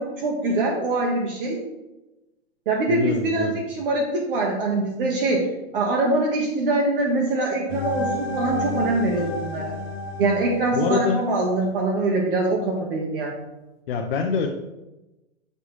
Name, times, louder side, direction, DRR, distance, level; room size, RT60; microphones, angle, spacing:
voice 1, 0.0-1.6 2.7-9.7 10.2-13.4, right 2 dB, 50° right, -1 dB, 1.1 m, -23 dB
voice 2, 2.9-3.6 10.7-11.2 13.9-14.5, left 5 dB, 55° left, 2 dB, 0.7 m, -25 dB
sound 1, 7.7-11.7, left 1 dB, 30° left, 1.0 m, -31 dB
6.8 x 3.1 x 5.5 m, 1.0 s
hypercardioid pair, 170°, 36 cm